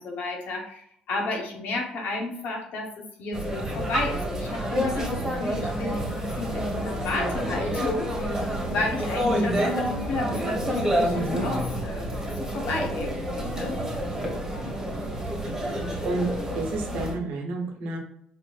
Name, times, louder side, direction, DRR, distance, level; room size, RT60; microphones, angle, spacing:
voice 1, 0.0-13.8, left 2 dB, 75° left, 1 dB, 1.1 m, -32 dB
sound 1, 3.3-17.1, equal, 15° right, 1.5 m, -28 dB
voice 2, 15.4-16.3 16.5-18.0, right 2 dB, 80° right, 1 dB, 1.0 m, -31 dB
4.4 x 3.0 x 2.4 m, 0.68 s
cardioid pair, 90°, 3 cm